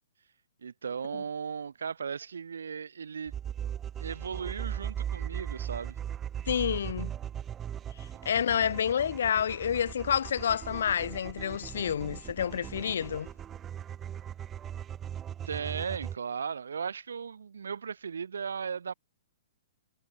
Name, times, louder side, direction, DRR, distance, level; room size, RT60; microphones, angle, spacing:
voice 1, 0.6-3.3 4.0-6.0 15.5-18.9, right 6 dB, 75° right, 2.0 m, -36 dB
sound 1, 3.3-16.2, right 9 dB, 20° right, 0.4 m, -39 dB
voice 2, 6.5-7.1 8.2-13.3, left 8 dB, 65° left, 0.6 m, -29 dB
hypercardioid pair, 120°, 0 cm